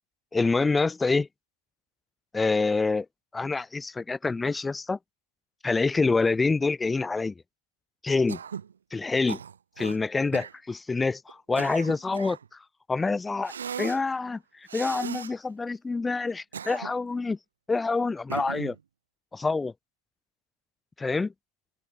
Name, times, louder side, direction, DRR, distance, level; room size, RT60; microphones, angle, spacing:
voice 1, 0.3-1.3 2.3-3.1 3.3-5.0 5.6-7.3 8.0-8.4 8.9-9.4 9.8-12.4 12.9-13.5 13.8-14.4 14.7-17.4 17.7-18.8 19.4-19.7 21.0-21.3, left 3 dB, 10° left, 2.2 m, -26 dB
Cough, 8.3-8.7 9.3-10.0 10.3-10.6 11.3-12.5 13.4-14.0 14.7-15.3 16.3-17.1 18.3-18.8, right 7 dB, 85° right, 4.3 m, -37 dB
open air
hypercardioid pair, 125°, 0 cm